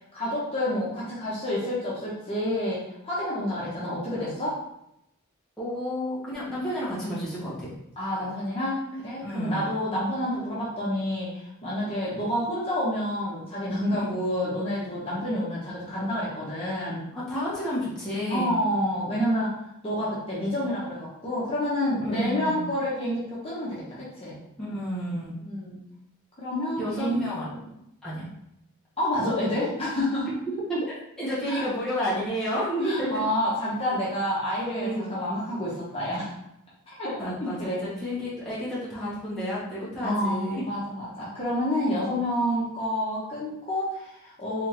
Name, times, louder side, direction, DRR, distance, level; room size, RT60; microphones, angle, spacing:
voice 1, 0.1-4.6 8.0-17.0 18.3-19.5 19.8-24.4 25.4-25.8 26.4-27.6 29.0-30.3 31.5-31.6 32.8-36.3 36.9-37.8 40.0-44.7, left 1 dB, 25° left, -8 dB, 1.1 m, -29 dB
voice 2, 5.6-7.7 9.2-9.6 13.9-14.2 17.1-18.5 22.0-22.6 24.6-25.3 26.8-27.5 28.0-28.3 30.7-33.2 34.7-35.1 37.2-40.6, equal, 5° left, -10 dB, 1.2 m, -30 dB
3.6 x 3.4 x 3.0 m, 0.81 s
head